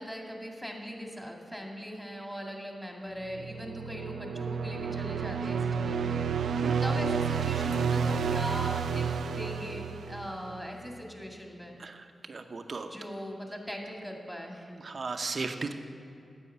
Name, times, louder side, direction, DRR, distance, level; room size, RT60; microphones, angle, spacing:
voice 1, 0.0-6.2 6.6-9.1 9.3-11.8 12.8-14.7, equal, 5° left, 1 dB, 2.0 m, -40 dB
sound 1, 3.3-10.6, right 6 dB, 85° right, 0.3 m, -30 dB
voice 2, 12.3-12.9 14.8-15.7, right 4 dB, 60° right, 7 dB, 0.7 m, -35 dB
9.9 x 7.7 x 5.7 m, 2.6 s
cardioid pair, 45°, 0 cm